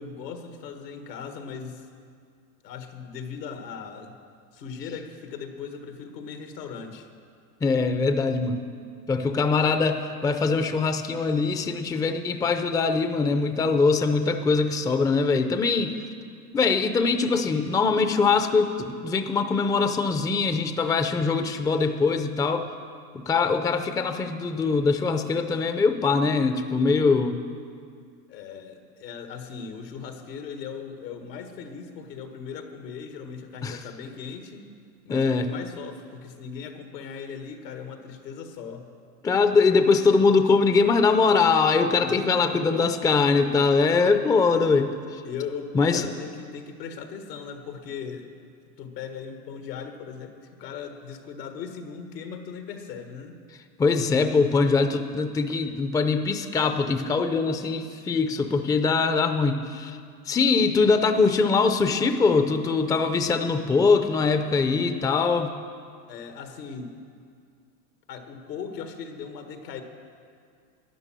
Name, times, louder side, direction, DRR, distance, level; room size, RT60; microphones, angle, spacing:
voice 1, 0.0-1.9 2.6-4.2 4.5-7.1 28.3-34.7 35.0-38.8 42.1-42.6 45.2-48.3 48.8-53.4 66.1-66.9 68.1-69.8, left 6 dB, 90° left, 6 dB, 1.7 m, -38 dB
voice 2, 7.6-8.6 9.1-16.0 16.5-22.7 23.1-27.4 33.6-33.8 35.1-35.4 39.2-45.2 45.7-46.1 53.8-60.0 60.3-65.6, left 4 dB, 10° left, 8 dB, 0.4 m, -22 dB
12.5 x 10.5 x 7.5 m, 2.2 s
hypercardioid pair, 110°, 48 cm